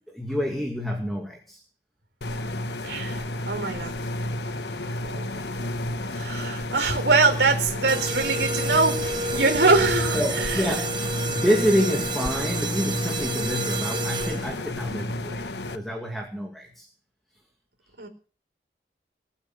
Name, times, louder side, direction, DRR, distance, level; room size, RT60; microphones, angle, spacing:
voice 1, 0.1-1.6 4.9-5.0 5.3-5.4 5.7-5.9 10.1-11.0 11.3-16.9, equal, ahead, 2 dB, 2.3 m, -28 dB
sound 1, 2.2-15.8, left 1 dB, 75° left, 1.2 m, -31 dB
voice 2, 2.8-3.2 3.5-3.9 5.0-5.5 6.1-10.7 18.0-18.1, right 3 dB, 75° right, 4 dB, 4.4 m, -23 dB
sound 2, 7.9-14.7, right 2 dB, 25° right, 1.4 m, -30 dB
20.0 x 8.2 x 7.9 m, 0.41 s
head